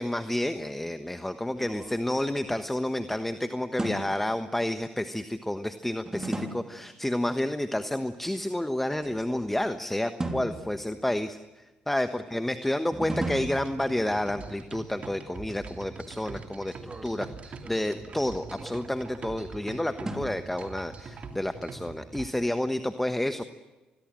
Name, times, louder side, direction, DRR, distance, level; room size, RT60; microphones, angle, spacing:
voice 1, 0.0-23.4, left 1 dB, 5° left, 10 dB, 1.3 m, -30 dB
sound 1, 1.4-3.1 3.8-4.4 6.1-6.9 8.9-9.7 10.2-11.3 12.9-14.3 16.7-19.2 20.1-21.0, right 2 dB, 20° right, 3.3 m, -38 dB
sound 2, 13.2-22.3, right 5 dB, 50° right, 2.9 m, -43 dB
26.5 x 21.0 x 7.6 m, 1.2 s
supercardioid pair, 70°, 3 cm